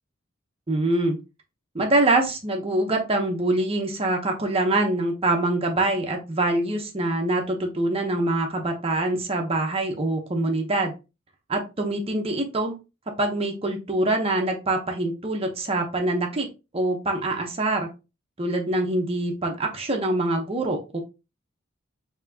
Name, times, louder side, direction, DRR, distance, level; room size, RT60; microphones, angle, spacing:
voice 1, 0.7-1.2 1.7-10.9 11.5-12.8 13.2-16.5 16.7-17.9 18.4-21.0, right 2 dB, 30° right, 2 dB, 0.8 m, -24 dB
4.6 x 2.9 x 2.7 m, 0.28 s
head